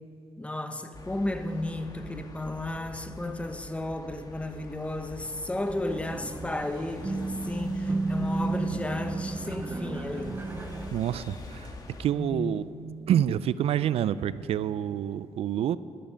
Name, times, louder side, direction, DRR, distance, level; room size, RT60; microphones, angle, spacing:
voice 1, 0.4-10.4 12.1-12.7, left 1 dB, 10° left, 0.9 m, -33 dB
sound 1, 0.9-12.1, left 2 dB, 35° left, 1.5 m, -45 dB
sound 2, 5.9-10.9, right 3 dB, 20° right, 0.5 m, -32 dB
voice 2, 10.9-12.7 13.1-15.8, right 10 dB, 70° right, 0.4 m, -27 dB
14.5 x 12.5 x 5.1 m
cardioid pair, 95°, 11 cm